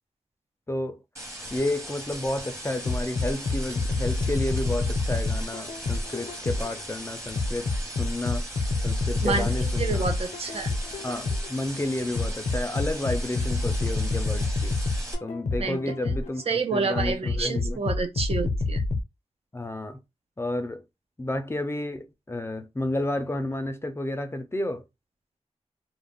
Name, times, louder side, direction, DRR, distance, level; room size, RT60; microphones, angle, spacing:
voice 1, 0.7-1.0 1.5-8.5 8.8-10.0 11.0-14.7 15.2-17.8 19.5-20.0 20.4-20.8 21.2-24.8, left 1 dB, 20° left, 0.4 m, -31 dB
sound 1, 1.2-15.2, equal, 25° right, 1.0 m, -39 dB
sound 2, 2.8-6.8 7.4-11.6 12.2-16.4 17.0-19.0, left 3 dB, 70° left, 0.5 m, -27 dB
voice 2, 9.2-10.7 15.6-15.9 16.5-18.8, right 4 dB, 55° right, 0.5 m, -29 dB
2.3 x 2.0 x 3.4 m
wide cardioid pair, 85°, 12 cm